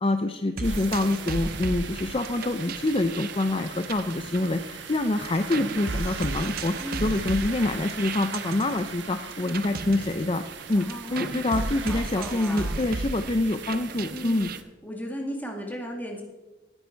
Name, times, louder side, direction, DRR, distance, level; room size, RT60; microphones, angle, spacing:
voice 1, 0.0-10.4 10.7-14.5, left 2 dB, 30° left, 7 dB, 0.6 m, -26 dB
sound 1, 0.6-5.0 5.2-14.6, right 3 dB, 55° right, 0.7 m, -35 dB
sound 2, 0.6-14.6, right 6 dB, 80° right, 1.2 m, -40 dB
voice 2, 6.8-7.3 10.8-12.9 13.9-14.5 14.8-16.2, equal, 10° left, 1 dB, 2.4 m, -36 dB
18.5 x 9.7 x 4.6 m, 1.1 s
head